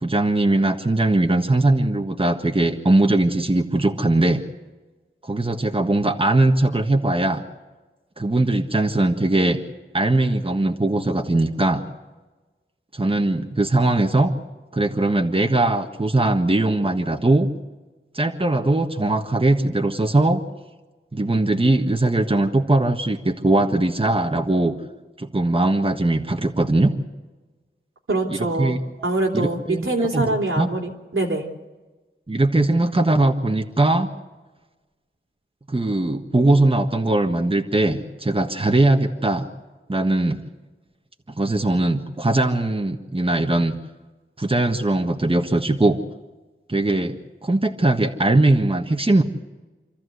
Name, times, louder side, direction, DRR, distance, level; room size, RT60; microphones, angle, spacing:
voice 1, 0.0-4.4 5.2-7.4 8.2-9.6 9.9-11.8 12.9-14.3 14.7-17.5 18.1-20.4 21.1-24.7 25.2-26.9 28.3-28.8 29.3-29.9 30.1-30.7 32.3-34.1 35.7-39.5 39.9-40.4 41.3-43.8 44.4-46.0 46.7-49.2, right 2 dB, 25° right, 3 dB, 1.6 m, -20 dB
voice 2, 28.1-28.8 29.0-31.5, right 2 dB, 80° right, 0 dB, 3.4 m, -24 dB
27.0 x 13.5 x 8.1 m, 1.2 s
wide cardioid pair, 45°, 21 cm